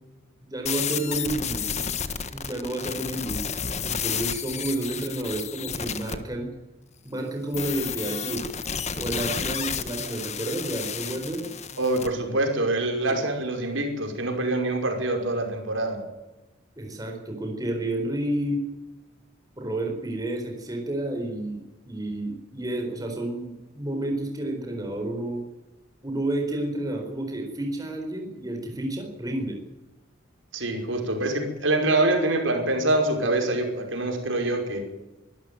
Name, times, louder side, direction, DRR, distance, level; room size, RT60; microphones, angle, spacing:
voice 1, 0.4-1.7 2.3-3.4 3.8-6.5 7.0-8.5 8.9-11.4 13.1-13.2 16.8-18.6 19.6-25.4 26.0-29.6, right 1 dB, 20° right, 2 dB, 4.2 m, -30 dB
sound 1, 0.7-6.2 7.5-12.1, left 7 dB, 35° left, 1.5 m, -31 dB
voice 2, 11.8-16.0 30.5-34.8, right 2 dB, 80° right, 3 dB, 5.5 m, -25 dB
24.0 x 13.0 x 9.4 m, 1.0 s
head